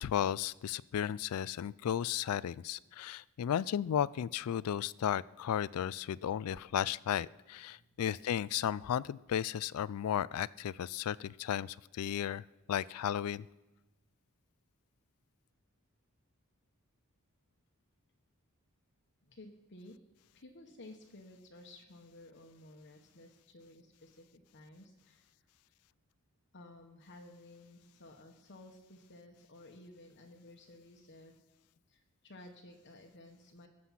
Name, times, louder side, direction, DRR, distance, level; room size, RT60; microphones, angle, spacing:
voice 1, 0.0-12.4 12.7-13.5, left 9 dB, 70° left, 21 dB, 0.3 m, -34 dB
voice 2, 19.2-20.0 20.3-25.3 26.5-31.3 31.9-33.7, left 1 dB, 50° left, 2 dB, 1.1 m, -55 dB
20.5 x 7.7 x 5.8 m, 1.1 s
head